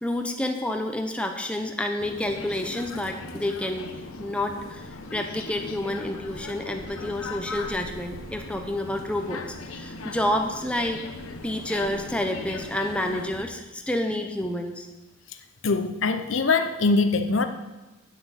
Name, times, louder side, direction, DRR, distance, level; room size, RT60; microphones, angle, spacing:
voice 1, 0.0-11.0 11.4-14.9, left 1 dB, 5° left, 4 dB, 0.8 m, -29 dB
sound 1, 2.0-13.4, left 2 dB, 85° left, 1.1 m, -39 dB
voice 2, 15.6-17.4, left 3 dB, 65° left, 8 dB, 0.8 m, -22 dB
8.5 x 7.7 x 8.3 m, 1.1 s
head